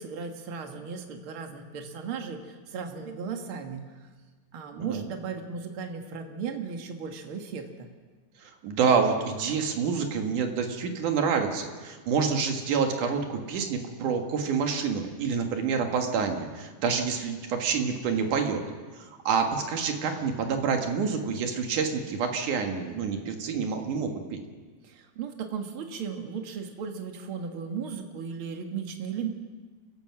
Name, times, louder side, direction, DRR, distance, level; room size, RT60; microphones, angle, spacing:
voice 1, 0.0-3.9 4.5-7.9 24.8-29.3, right 6 dB, 75° right, 4 dB, 1.2 m, -36 dB
voice 2, 8.4-18.6 19.0-24.4, right 5 dB, 55° right, 4 dB, 2.7 m, -27 dB
29.0 x 15.5 x 5.9 m, 1.4 s
omnidirectional pair, 5.0 m